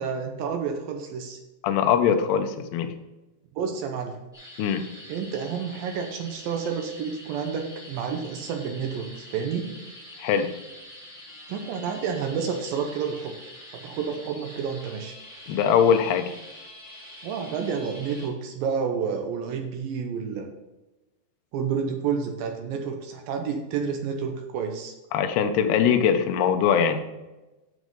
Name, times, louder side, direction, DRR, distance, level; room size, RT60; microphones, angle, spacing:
voice 1, 0.0-1.4 3.6-4.2 5.1-9.8 11.5-13.4 13.7-15.2 17.2-20.5 21.5-24.9, right 6 dB, 80° right, 4 dB, 2.2 m, -30 dB
voice 2, 1.6-2.9 4.6-4.8 10.2-10.5 15.5-16.3 25.1-27.0, left 7 dB, 80° left, 7 dB, 2.7 m, -21 dB
sound 1, 4.3-18.3, left 1 dB, ahead, 2.5 m, -45 dB
7.9 x 6.1 x 5.3 m, 1.0 s
omnidirectional pair, 4.9 m